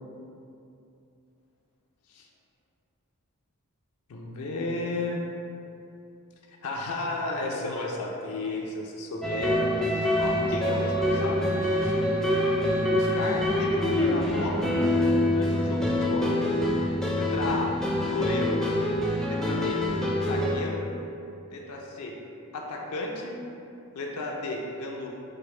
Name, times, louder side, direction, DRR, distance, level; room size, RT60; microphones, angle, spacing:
voice 1, 4.1-5.2 6.6-11.9 12.8-16.3 16.9-17.7 18.0-18.6 19.3-19.8 20.2-20.9 21.5-22.1 22.5-23.4 23.9-25.1, left 2 dB, 80° left, -1 dB, 0.5 m, -33 dB
sound 1, 9.2-20.6, left 1 dB, ahead, 0.4 m, -25 dB
5.0 x 2.0 x 4.3 m, 2.7 s
head